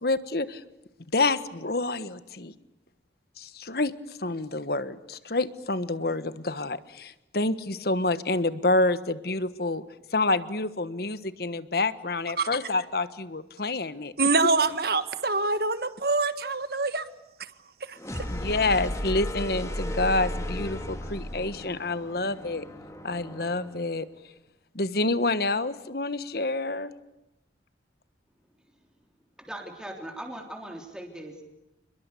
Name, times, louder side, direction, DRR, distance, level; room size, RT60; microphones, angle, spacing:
voice 1, 0.0-0.6 1.1-2.5 3.4-3.9 4.2-9.8 10.1-14.1 18.3-22.6 23.0-24.0 24.7-26.9, left 2 dB, 55° left, 13 dB, 1.3 m, -28 dB
voice 2, 14.2-17.0 17.8-18.0, right 3 dB, 55° right, 12 dB, 1.6 m, -25 dB
sound 1, 18.0-23.8, equal, 15° left, 2.5 m, -34 dB
voice 3, 29.4-31.4, right 1 dB, 5° right, 1 dB, 3.5 m, -39 dB
30.0 x 21.5 x 8.4 m, 0.90 s
head